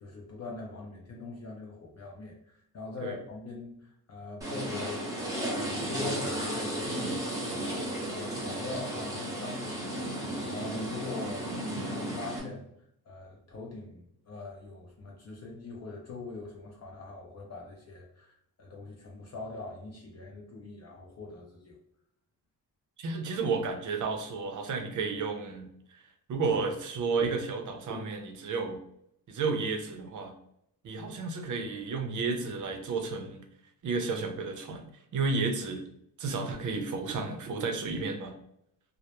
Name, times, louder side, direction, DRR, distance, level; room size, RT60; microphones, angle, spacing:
voice 1, 0.0-5.1 5.4-12.7 13.1-21.8, left 3 dB, 45° left, -1 dB, 0.5 m, -42 dB
sound 1, 4.4-12.4, right 1 dB, 10° right, 0.7 m, -34 dB
voice 2, 23.0-25.7 26.3-28.8 29.3-30.3 30.8-33.4 33.8-34.8 35.1-35.8 36.2-38.3, right 4 dB, 50° right, 4 dB, 0.5 m, -32 dB
2.1 x 2.0 x 2.8 m, 0.73 s
cardioid pair, 115°, 38 cm